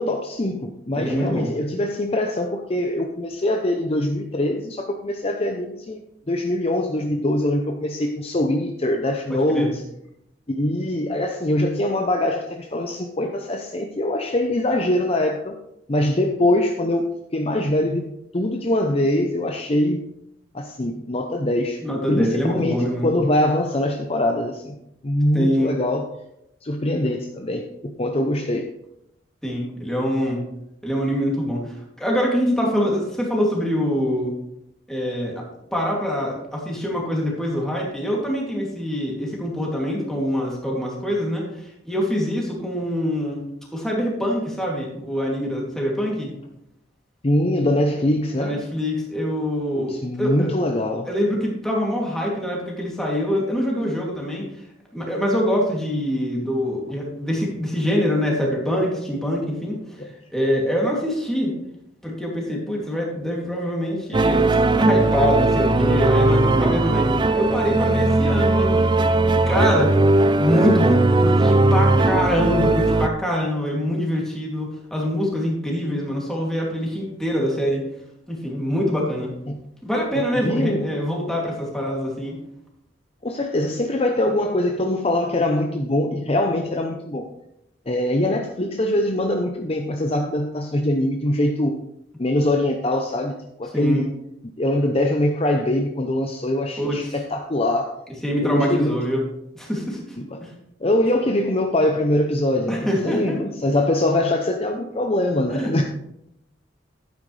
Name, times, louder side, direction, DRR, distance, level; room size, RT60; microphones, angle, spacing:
voice 1, 0.0-6.0 6.3-9.8 10.5-15.5 15.9-18.1 18.3-20.0 20.5-21.8 22.1-24.8 25.0-26.1 26.6-28.7 47.2-48.6 49.7-51.1 79.5-79.6 80.2-80.9 83.2-87.3 87.9-91.8 92.2-94.1 94.6-97.9 98.4-99.0 100.3-100.4 100.8-105.8, left 1 dB, 30° left, 3 dB, 0.7 m, -23 dB
voice 2, 0.9-1.5 9.3-9.7 21.8-23.1 25.3-25.8 29.4-30.4 30.8-34.3 34.9-35.4 35.7-43.4 43.7-46.3 48.4-50.5 51.1-54.5 54.9-59.8 60.3-61.5 62.0-69.0 69.2-70.0 70.3-77.8 78.3-79.3 79.8-82.4 93.7-94.0 96.8-97.1 98.2-99.2 99.5-100.5 102.7-103.4 105.6-105.7, equal, 5° left, -3 dB, 2.7 m, -24 dB
sound 1, 64.1-73.1, right 2 dB, 25° right, 0.4 m, -18 dB
11.5 x 9.2 x 3.3 m, 0.80 s
head